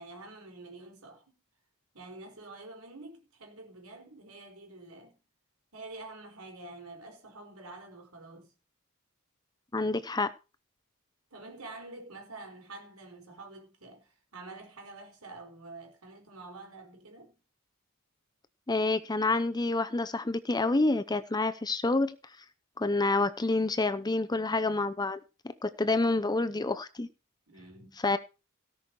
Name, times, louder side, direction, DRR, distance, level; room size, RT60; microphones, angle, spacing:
voice 1, 0.0-1.4 1.9-5.2 5.7-8.5 11.3-17.4 27.5-28.0, right 2 dB, 70° right, 4.6 m, -47 dB
voice 2, 9.7-10.3 18.7-22.1 22.8-25.2 25.6-27.1 28.0-28.2, left 2 dB, 20° left, 0.7 m, -28 dB
17.0 x 6.2 x 4.7 m
head